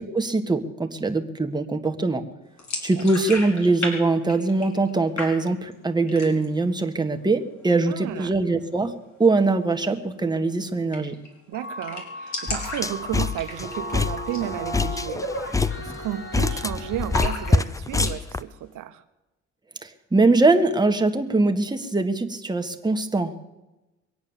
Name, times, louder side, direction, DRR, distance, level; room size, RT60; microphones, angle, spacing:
voice 1, 0.1-2.2 2.8-11.2 19.8-23.4, right 3 dB, 15° right, 5 dB, 1.5 m, -22 dB
sound 1, 2.6-3.9 4.2-4.9 5.2-5.7 6.1-6.6 6.9-7.0 7.4-8.0 9.7-9.8 10.2-10.3 10.5-10.6 10.9-11.3 11.5-11.6 11.8-13.9 14.2-14.5 14.8-14.9 15.5-16.6 17.1-18.2, left 2 dB, 65° left, 4.7 m, -33 dB
voice 2, 7.8-8.4 11.5-19.0, right 12 dB, 85° right, 9 dB, 0.9 m, -33 dB
sound 2, 11.5-17.5, equal, 45° left, 2.9 m, -36 dB
sound 3, 12.5-18.4, left 3 dB, 10° left, 0.6 m, -26 dB
23.0 x 8.7 x 7.2 m, 1.0 s
cardioid pair, 90°, 30 cm